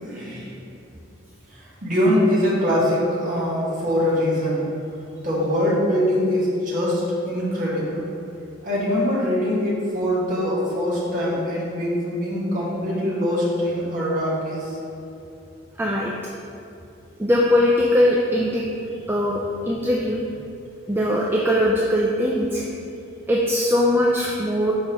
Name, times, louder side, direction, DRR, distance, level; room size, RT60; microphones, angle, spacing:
voice 1, 0.0-0.5 1.8-4.6 5.2-8.1 8.6-14.7, equal, 40° right, -7 dB, 1.5 m, -23 dB
voice 2, 15.8-16.1 17.2-18.6 19.1-20.2 20.9-22.7 23.3-24.7, left 1 dB, 10° right, -3 dB, 0.3 m, -20 dB
6.5 x 5.2 x 3.0 m, 2.7 s
head